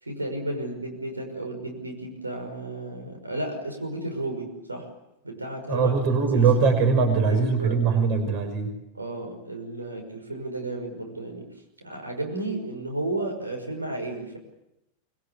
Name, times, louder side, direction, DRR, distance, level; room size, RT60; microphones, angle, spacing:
voice 1, 0.0-4.9 5.2-5.9 6.3-6.5 7.3-8.1 8.9-11.5 11.8-14.4, right 2 dB, 80° right, 3 dB, 5.8 m, -33 dB
voice 2, 5.7-8.7, right 5 dB, 40° right, 8 dB, 5.6 m, -21 dB
25.0 x 24.5 x 8.6 m, 0.87 s
figure-of-eight pair, 90°, 0 cm